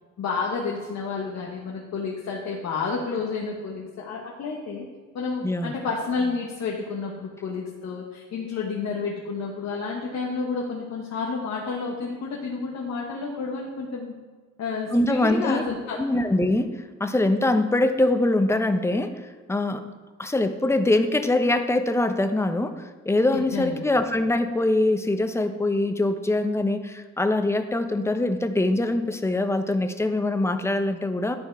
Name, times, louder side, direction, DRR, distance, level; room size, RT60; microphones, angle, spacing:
voice 1, 0.2-4.9 5.1-14.1 14.6-16.0 23.3-23.8, left 4 dB, 60° left, -2 dB, 1.4 m, -30 dB
voice 2, 5.4-5.7 14.9-15.6 15.9-16.7 17.0-19.1 19.5-19.8 20.2-31.4, left 2 dB, 10° left, 8 dB, 0.7 m, -23 dB
11.0 x 4.4 x 4.7 m, 1.4 s
cardioid pair, 90°, 30 cm